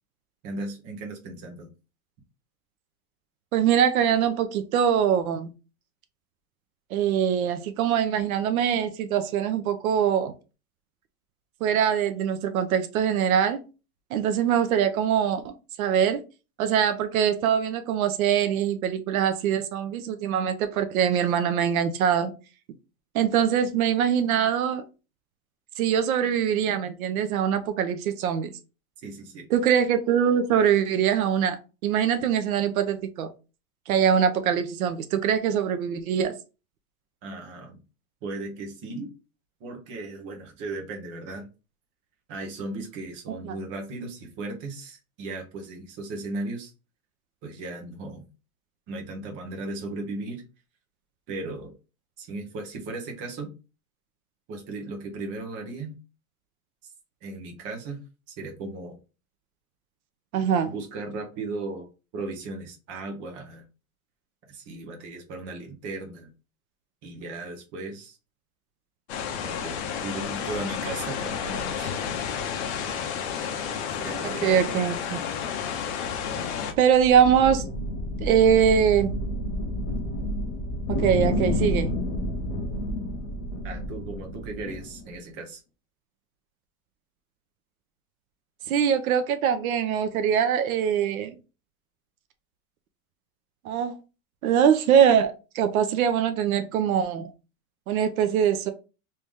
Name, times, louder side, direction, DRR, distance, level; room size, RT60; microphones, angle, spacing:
voice 1, 0.4-1.7 29.0-29.5 37.2-37.8 38.2-39.1 39.6-41.5 42.3-46.7 47.4-48.2 48.9-50.4 51.3-51.7 52.2-53.5 54.5-55.9 56.8-56.9 57.2-58.0 58.3-59.0 60.6-61.9 62.1-63.6 64.5-66.3 67.0-68.2 69.4-71.9 72.2-72.3 74.0-74.6 83.6-85.6, right 2 dB, 25° right, 0.9 m, -36 dB
voice 2, 3.5-5.5 6.9-10.3 11.6-13.6 14.1-16.2 16.6-22.3 23.1-24.8 25.8-28.5 29.5-33.3 33.9-36.3 43.4-43.6 60.3-60.7 74.4-75.2 76.8-77.6 78.2-79.1 80.9-81.9 88.7-91.4 93.6-94.0 94.4-97.3 97.9-98.7, right 8 dB, 80° right, 0.7 m, -23 dB
sound 1, 69.1-76.7, left 7 dB, 50° left, 0.8 m, -31 dB
sound 2, 76.7-85.1, left 1 dB, 25° left, 0.4 m, -30 dB
3.2 x 2.8 x 3.6 m
supercardioid pair, 175°, 42 cm